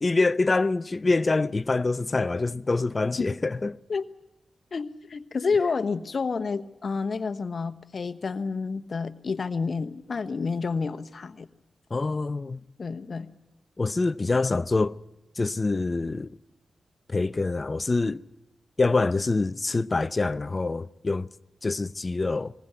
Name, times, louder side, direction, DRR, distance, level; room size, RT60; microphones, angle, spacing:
voice 1, 0.0-3.8 11.9-12.6 13.8-15.0 15.4-16.3 17.1-18.2 18.8-21.3 21.6-22.5, left 3 dB, 35° left, 0.7 m, -25 dB
voice 2, 4.7-11.5 12.8-13.3, left 4 dB, 55° left, 1.1 m, -29 dB
21.0 x 16.0 x 9.4 m
cardioid pair, 60°, 0 cm